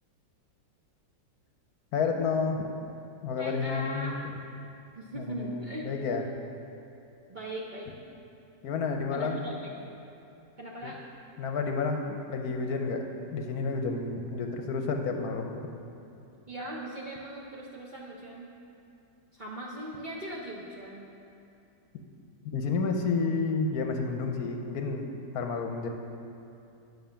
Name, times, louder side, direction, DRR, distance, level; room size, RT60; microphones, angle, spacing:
voice 1, 1.9-2.7 3.2-4.2 5.2-6.2 8.6-9.5 10.8-10.9 11.4-13.0 13.3-15.6 22.4-25.9, left 4 dB, 65° left, 3 dB, 1.1 m, -30 dB
voice 2, 3.4-4.2 4.9-5.9 7.3-7.9 9.1-9.8 10.6-11.0 16.5-18.5 19.3-21.1, right 1 dB, 75° right, -4 dB, 0.4 m, -39 dB
9.3 x 6.3 x 5.7 m, 2.6 s
omnidirectional pair, 2.0 m